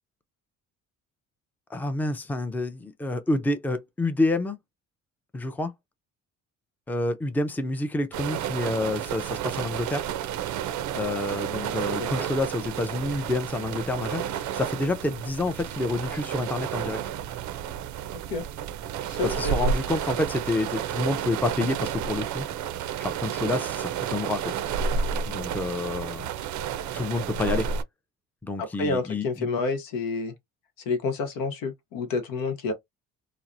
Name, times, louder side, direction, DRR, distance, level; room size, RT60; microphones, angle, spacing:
voice 1, 1.7-4.6 5.3-5.7 6.9-10.1 10.9-17.0 19.2-22.5 23.0-24.6 25.3-26.3 26.9-27.7 28.4-29.5, left 2 dB, 5° left, 0.5 m, -28 dB
sound 1, 8.1-27.8, right 8 dB, 60° right, 0.5 m, -31 dB
voice 2, 19.1-19.7 28.6-30.3 30.9-32.7, left 4 dB, 85° left, 0.8 m, -29 dB
3.0 x 2.0 x 2.5 m
cardioid pair, 85°, 34 cm